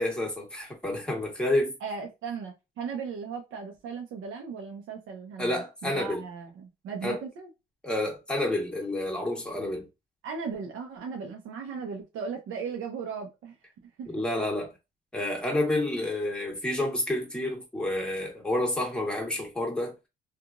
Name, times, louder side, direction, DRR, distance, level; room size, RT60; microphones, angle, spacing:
voice 1, 0.0-1.7 5.4-6.2 7.0-7.2 7.8-9.9 14.1-14.7 15.1-20.0, left 1 dB, 5° left, 1.4 m, -29 dB
voice 2, 1.8-7.5 10.2-13.6 14.0-14.1, right 5 dB, 85° right, 0.7 m, -37 dB
2.9 x 2.4 x 2.5 m
cardioid pair, 90°, 20 cm